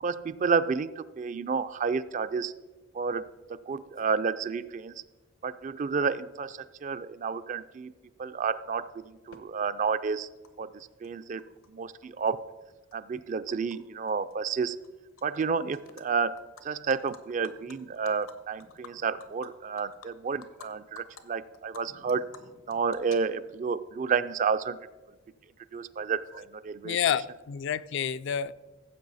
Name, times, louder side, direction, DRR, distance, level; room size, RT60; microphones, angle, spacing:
voice 1, 0.0-2.5 2.9-4.9 5.4-7.9 8.2-10.3 10.6-11.4 11.7-12.5 12.9-14.8 15.2-22.3 22.7-24.8 25.7-27.0, right 5 dB, 40° right, 0.4 m, -30 dB
Animal, 9.3-9.4 10.4-10.5 10.8-11.7 12.0-13.8 14.1-14.3 14.6-15.4 15.7-16.0 16.4-20.7 21.0-21.2 21.5-23.7, left 6 dB, 85° left, 1.0 m, -51 dB
voice 2, 26.8-28.5, left 8 dB, 60° left, 0.3 m, -29 dB
15.0 x 7.6 x 4.1 m
head